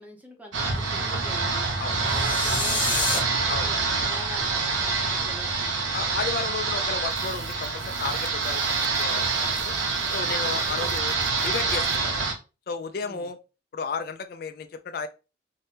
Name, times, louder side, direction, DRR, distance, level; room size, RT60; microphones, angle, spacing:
voice 1, 0.0-1.7 2.0-6.0 13.0-13.3, left 1 dB, 10° right, 0.6 m, -43 dB
sound 1, 0.5-12.3, right 4 dB, 85° right, 0.8 m, -26 dB
sound 2, 2.0-3.2, left 4 dB, 25° left, 0.8 m, -28 dB
voice 2, 5.9-9.7 10.1-11.1 11.4-12.3 12.7-13.4 13.7-15.1, left 5 dB, 50° left, 0.3 m, -33 dB
sound 3, 7.1-12.2, right 5 dB, 65° right, 0.4 m, -43 dB
4.9 x 2.1 x 2.8 m
head